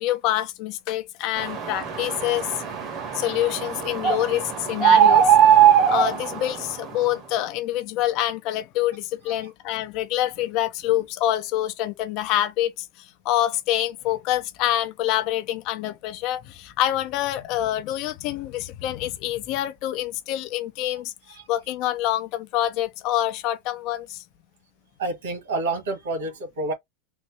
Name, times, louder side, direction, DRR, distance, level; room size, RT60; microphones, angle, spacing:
voice 1, 0.0-2.6 3.1-5.3 5.9-12.9 13.2-21.1 21.5-24.2, left 13 dB, 50° left, 0.7 m, -26 dB
sound 1, 1.4-6.9, right 9 dB, 35° right, 1.4 m, -20 dB
voice 2, 25.0-26.7, right 2 dB, 85° right, 1.5 m, -28 dB
3.9 x 2.0 x 3.2 m
supercardioid pair, 130°, 0 cm